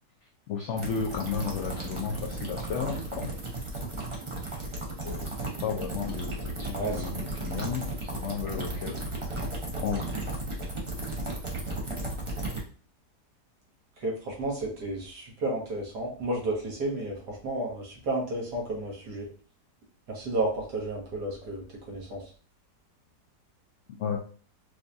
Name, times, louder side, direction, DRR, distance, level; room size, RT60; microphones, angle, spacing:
voice 1, 0.5-3.3 4.4-4.5 5.0-5.3 5.6-9.0 9.3-9.4 9.8-10.0 23.9-24.2, left 6 dB, 75° left, 1 dB, 0.6 m, -33 dB
sound 1, 0.8-12.6, right 2 dB, 55° right, 0.3 m, -35 dB
voice 2, 6.7-7.0 7.6-7.7 14.0-19.3 20.1-22.2, right 2 dB, 75° right, -3 dB, 1.8 m, -32 dB
4.8 x 2.3 x 2.6 m, 0.40 s
omnidirectional pair, 1.8 m